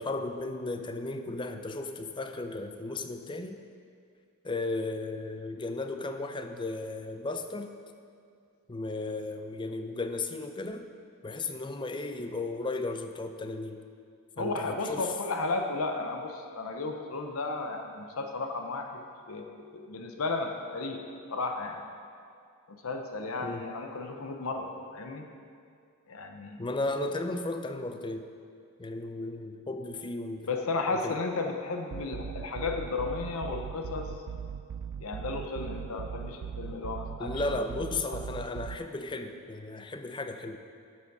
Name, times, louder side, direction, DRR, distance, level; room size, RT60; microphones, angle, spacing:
voice 1, 0.0-3.6 4.4-7.7 8.7-10.9 11.2-13.8 14.4-15.1 23.4-23.7 26.6-28.3 28.8-30.5 31.0-31.2 37.2-40.6, left 2 dB, 20° left, 7 dB, 0.5 m, -35 dB
voice 2, 14.4-19.0 19.3-21.0 21.3-21.8 22.7-25.2 26.1-26.6 30.5-34.1 35.0-37.6 38.1-38.2, left 3 dB, 65° left, 4 dB, 0.8 m, -34 dB
sound 1, 31.9-38.8, right 7 dB, 90° right, 0.4 m, -39 dB
12.0 x 7.3 x 4.7 m, 2.3 s
head